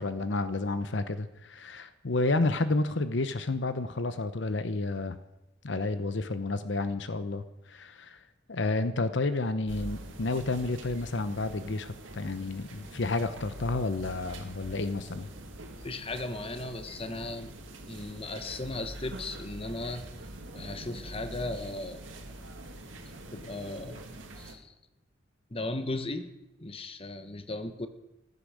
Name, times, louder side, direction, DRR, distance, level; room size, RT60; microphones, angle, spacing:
voice 1, 0.0-5.2 5.6-8.2 8.5-15.3, left 2 dB, 65° left, 11 dB, 0.9 m, -30 dB
sound 1, 9.7-24.6, right 1 dB, 90° right, 2.2 m, -44 dB
voice 2, 15.8-17.5 17.9-20.0 20.5-22.0 23.3-24.1 24.4-24.7 25.5-26.3 26.6-27.9, left 2 dB, 30° left, 9 dB, 1.1 m, -36 dB
15.5 x 12.5 x 6.4 m, 0.93 s
head